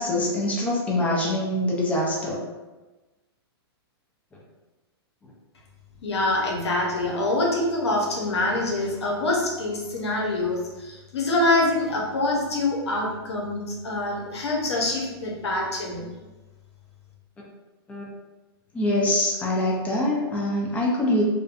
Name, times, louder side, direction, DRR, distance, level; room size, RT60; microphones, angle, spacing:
voice 1, 0.0-2.4 17.9-18.1 18.7-21.2, left 1 dB, 10° left, -4 dB, 0.5 m, -24 dB
voice 2, 6.0-16.1, left 2 dB, 90° left, -2 dB, 0.7 m, -25 dB
2.5 x 2.1 x 2.5 m, 1.2 s
hypercardioid pair, 130°, 14 cm